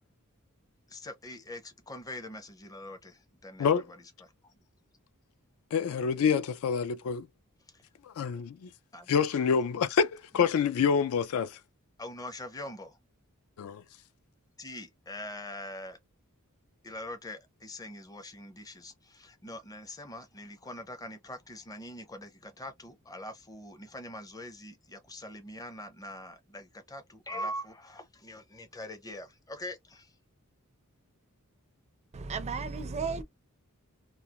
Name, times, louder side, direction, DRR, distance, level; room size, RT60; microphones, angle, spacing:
voice 1, 0.9-3.8 4.2-4.3 7.7-7.8 8.9-9.1 10.4-10.5 12.0-13.0 14.6-16.0 16.8-30.1, left 1 dB, 15° left, 0.5 m, -43 dB
voice 2, 5.7-7.3 8.0-8.7 9.1-11.6 13.6-13.8, left 6 dB, 70° left, 0.3 m, -27 dB
voice 3, 32.1-33.2, right 4 dB, 30° right, 0.4 m, -34 dB
2.3 x 2.3 x 2.8 m
head